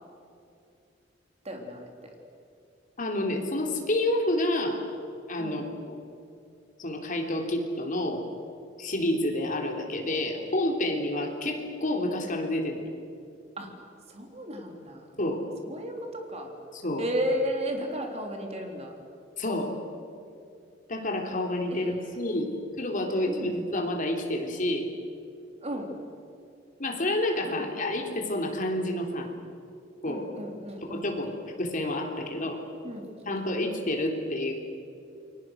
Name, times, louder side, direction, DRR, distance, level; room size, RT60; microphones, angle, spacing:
voice 1, 1.4-2.1 5.4-5.7 13.6-13.7 14.1-15.1 15.6-16.5 17.0-18.9 21.7-22.7 23.0-23.6 25.6-26.0 27.4-27.7 30.1-31.1 32.8-33.1, equal, 35° right, 2 dB, 3.7 m, -34 dB
voice 2, 3.0-4.8 5.3-6.0 6.8-8.2 8.8-12.9 15.2-15.4 16.7-17.0 19.4-19.7 20.9-22.5 22.8-24.9 26.8-29.3 30.0-30.2 30.9-31.3 31.6-32.6 33.3-34.5, left 1 dB, 45° left, 2 dB, 3.4 m, -29 dB
29.0 x 23.0 x 6.4 m, 2.5 s
head